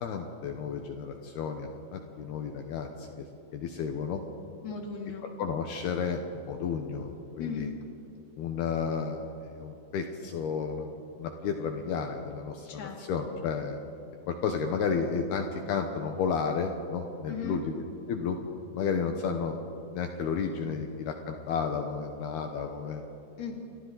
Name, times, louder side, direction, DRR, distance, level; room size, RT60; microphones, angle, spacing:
voice 1, 0.0-3.2 3.5-4.2 5.4-6.2 6.5-7.7 8.4-13.8 14.3-18.4 18.7-19.6 19.9-23.0, left 6 dB, 70° left, 4 dB, 2.9 m, -32 dB
voice 2, 4.6-5.2 7.4-7.7 12.7-13.4 17.3-17.6 23.4-23.5, left 6 dB, 30° left, 1 dB, 2.7 m, -37 dB
29.5 x 25.0 x 4.1 m, 2.7 s
omnidirectional pair, 5.1 m